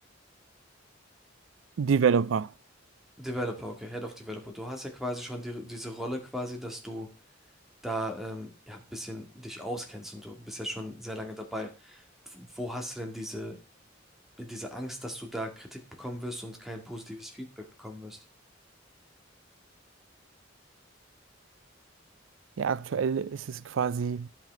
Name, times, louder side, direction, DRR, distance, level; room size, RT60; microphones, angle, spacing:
voice 1, 1.8-2.5 22.6-24.3, right 6 dB, 90° right, 0.4 m, -27 dB
voice 2, 3.2-7.1 7.8-13.6 14.4-18.2, equal, ahead, 2.0 m, -37 dB
11.0 x 5.8 x 4.5 m
head